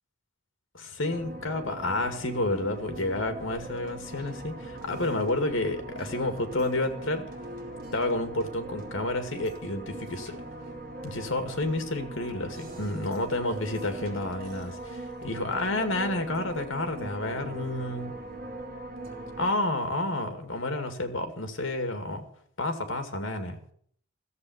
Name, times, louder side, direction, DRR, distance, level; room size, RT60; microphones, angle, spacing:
voice 1, 0.7-7.2 7.9-10.4 11.0-18.1 19.4-22.3 22.6-23.6, left 2 dB, 75° left, 7 dB, 2.3 m, -30 dB
sound 1, 1.1-19.5, right 1 dB, 45° right, 3.2 m, -40 dB
14.0 x 7.5 x 9.5 m, 0.63 s
head